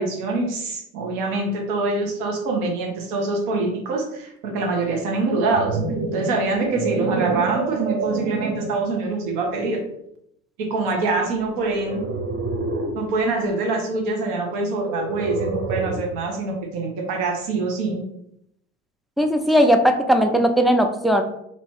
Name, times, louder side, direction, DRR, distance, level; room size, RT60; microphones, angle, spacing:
voice 1, 0.0-5.8 6.1-9.8 10.6-12.0 12.9-18.0, right 3 dB, 60° right, 1 dB, 1.2 m, -24 dB
sound 1, 5.2-8.9 9.5-9.8 11.5-13.1 14.7-16.2, right 3 dB, 35° right, 0.8 m, -28 dB
voice 2, 19.2-21.2, equal, ahead, 5 dB, 0.4 m, -18 dB
3.0 x 2.9 x 4.6 m, 0.75 s
hypercardioid pair, 80°, 37 cm